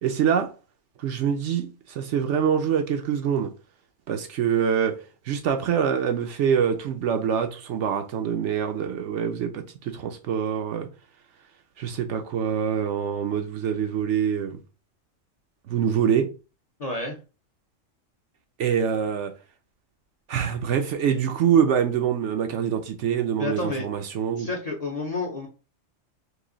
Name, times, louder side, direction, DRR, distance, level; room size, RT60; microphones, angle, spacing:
voice 1, 0.0-0.5 1.0-3.5 4.1-10.9 11.8-14.6 15.7-16.3 18.6-19.3 20.3-24.5, right 8 dB, 70° right, 0.9 m, -25 dB
voice 2, 16.8-17.2 23.4-23.8 24.4-25.5, left 2 dB, 40° left, 0.6 m, -29 dB
3.0 x 2.6 x 3.8 m
omnidirectional pair, 1.4 m